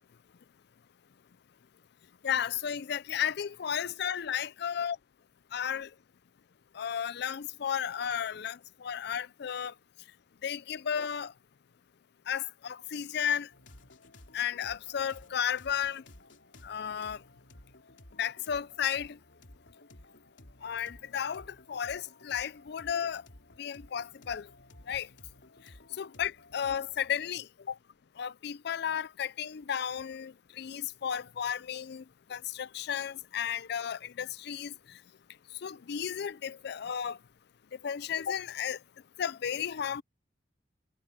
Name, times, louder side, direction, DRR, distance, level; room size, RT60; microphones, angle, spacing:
voice 1, 2.2-5.0 5.5-5.9 6.8-9.7 10.4-11.3 12.3-13.5 14.3-16.0 16.6-17.2 18.2-19.2 20.6-23.2 23.6-24.5 24.9-25.1 26.0-27.7 28.2-32.0 32.3-34.7 35.6-37.2 37.8-38.8 39.2-40.0, left 8 dB, 60° left, 0.4 m, -33 dB
sound 1, 13.5-27.1, left 1 dB, 80° left, 3.2 m, -55 dB
head